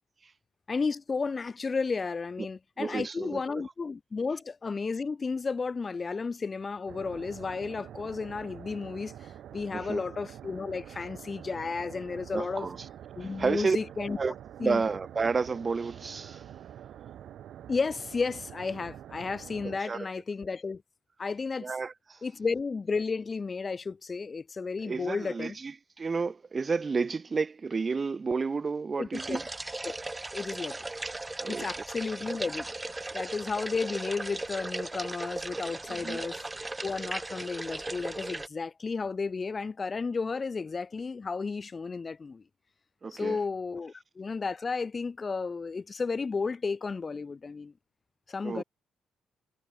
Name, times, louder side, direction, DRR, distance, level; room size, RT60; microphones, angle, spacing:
voice 1, 0.7-9.1 9.5-12.7 13.2-14.2 14.6-14.8 17.7-20.8 21.2-21.7 22.2-25.6 29.0-29.4 29.8-30.0 30.3-30.8 31.5-32.7 33.1-36.4 36.8-42.4 43.1-47.7 48.3-48.6, left 4 dB, 30° left, 0.9 m, -33 dB
voice 2, 2.8-3.6 9.7-10.0 12.3-12.9 13.2-14.3 14.6-16.4 19.6-20.1 21.6-22.2 24.8-29.4 31.4-31.7 35.9-36.2 43.0-43.4 48.4-48.6, right 4 dB, 35° right, 1.8 m, -31 dB
sound 1, 6.9-19.8, right 10 dB, 70° right, 4.1 m, -46 dB
sound 2, 29.1-38.5, right 2 dB, 15° right, 1.9 m, -37 dB
cardioid pair, 90°, 0 cm